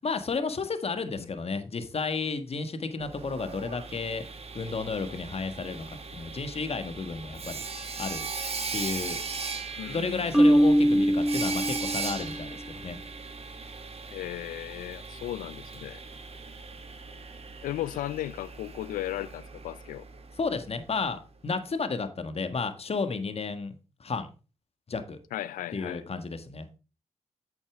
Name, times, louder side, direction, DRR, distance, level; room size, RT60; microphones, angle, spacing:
voice 1, 0.0-4.2 4.5-5.9 6.1-7.6 8.0-8.3 8.7-9.2 9.9-13.0 20.4-23.7 24.0-24.3 24.9-25.2 25.7-26.7, left 4 dB, 50° left, 1.5 m, -32 dB
Sawing, 3.0-20.8, right 4 dB, 50° right, 1.8 m, -39 dB
voice 2, 9.8-11.1 14.1-16.0 17.6-20.0 25.3-26.0, left 14 dB, 85° left, 0.4 m, -36 dB
Marimba xylophone, 10.3-12.4, equal, 5° right, 0.9 m, -22 dB
8.7 x 7.1 x 3.5 m
supercardioid pair, 50°, 14 cm